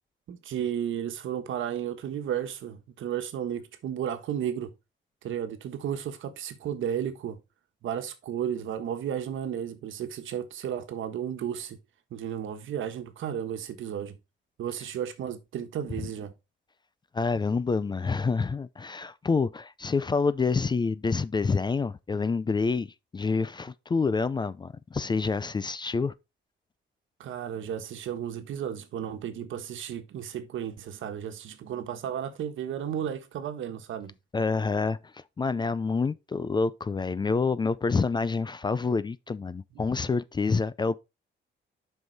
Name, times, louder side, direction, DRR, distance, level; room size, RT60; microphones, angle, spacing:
voice 1, 0.3-4.7 5.2-7.4 7.8-11.8 12.1-14.2 14.6-16.3 27.2-34.1 39.9-40.1, right 9 dB, 75° right, 1.3 m, -33 dB
voice 2, 17.1-26.1 34.3-40.9, left 4 dB, 20° left, 0.4 m, -27 dB
7.8 x 5.6 x 4.0 m
cardioid pair, 120°, 20 cm